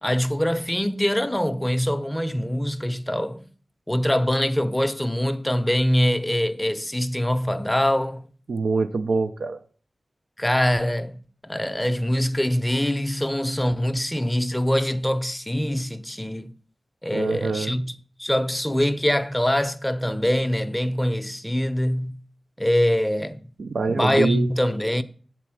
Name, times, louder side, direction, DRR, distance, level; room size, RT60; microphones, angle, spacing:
voice 1, 0.0-3.4 3.9-8.3 10.4-16.5 17.0-17.9 18.2-22.2 22.6-23.4 23.9-25.0, equal, 10° left, 0.5 m, -24 dB
voice 2, 8.5-9.6 17.1-17.7 23.6-24.5, right 4 dB, 90° right, 0.4 m, -24 dB
8.0 x 4.2 x 6.0 m
wide cardioid pair, 55°, 0 cm